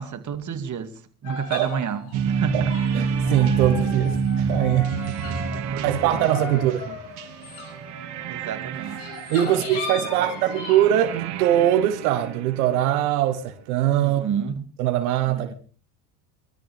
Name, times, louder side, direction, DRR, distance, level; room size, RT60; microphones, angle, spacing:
voice 1, 0.0-2.8 5.2-6.3 6.5-7.0 8.3-9.1 9.5-10.4 14.0-14.6 15.3-15.5, right 7 dB, 40° right, 2.4 m, -32 dB
sound 1, 1.2-5.7 6.0-10.9, left 5 dB, 75° left, 6.5 m, -37 dB
sound 2, 2.1-13.0, right 5 dB, 65° right, 2.7 m, -28 dB
voice 2, 2.9-5.0 5.8-6.9 9.3-14.2 14.8-15.5, right 12 dB, 85° right, 1.5 m, -22 dB
23.5 x 14.0 x 3.5 m
supercardioid pair, 80°, 43 cm